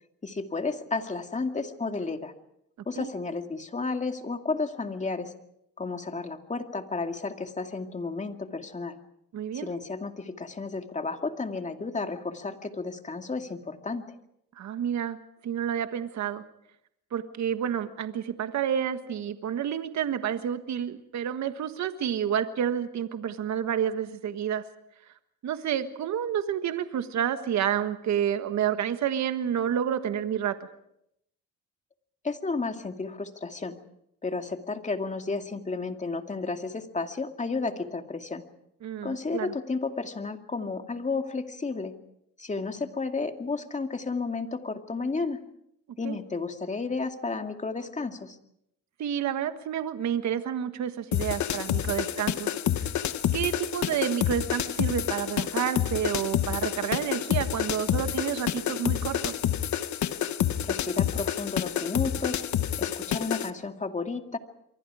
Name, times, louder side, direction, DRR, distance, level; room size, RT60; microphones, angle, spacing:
voice 1, 0.2-2.3 2.9-5.3 5.8-9.0 9.5-14.2 32.2-33.8 34.2-38.4 39.0-41.9 42.4-45.4 46.0-48.4 60.6-62.4 62.8-64.4, left 3 dB, 25° left, 6 dB, 2.3 m, -32 dB
voice 2, 9.3-9.7 14.6-15.2 15.4-16.4 17.1-24.6 25.4-30.6 38.8-39.5 46.0-46.2 49.0-52.5 53.3-59.3, right 9 dB, 65° right, 9 dB, 1.5 m, -29 dB
sound 1, 51.1-63.5, left 10 dB, 70° left, 1.2 m, -28 dB
28.5 x 23.5 x 4.9 m, 0.77 s
cardioid pair, 90°, 30 cm